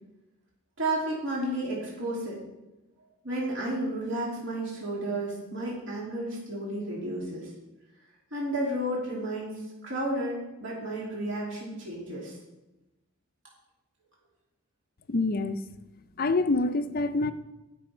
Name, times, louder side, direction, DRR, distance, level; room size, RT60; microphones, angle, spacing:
voice 1, 0.8-2.4 3.2-7.5 8.3-12.4, right 1 dB, 55° right, -4 dB, 2.8 m, -32 dB
voice 2, 15.1-15.6 16.2-17.3, left 3 dB, 40° left, 10 dB, 0.5 m, -26 dB
18.5 x 6.2 x 4.4 m, 1.0 s
head